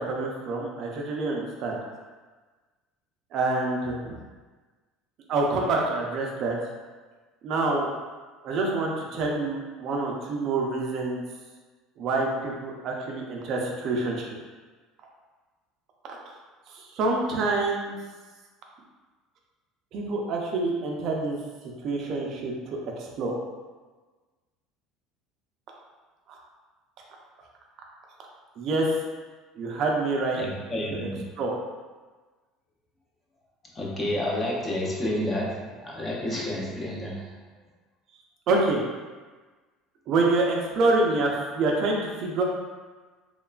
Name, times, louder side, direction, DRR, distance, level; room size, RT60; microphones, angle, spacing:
voice 1, 0.0-1.8 3.3-4.2 5.3-6.6 7.4-7.9 8.4-11.2 12.0-14.3 16.7-18.0 19.9-21.4 21.8-23.4 28.6-28.9 29.6-30.4 30.9-31.1 31.4-31.5 38.5-38.8 40.1-42.4, right 3 dB, 45° right, -1 dB, 0.4 m, -26 dB
voice 2, 30.4-31.2 33.8-37.3, left 1 dB, 15° left, -3 dB, 0.5 m, -30 dB
3.0 x 2.1 x 2.3 m, 1.3 s
cardioid pair, 150°, 0 cm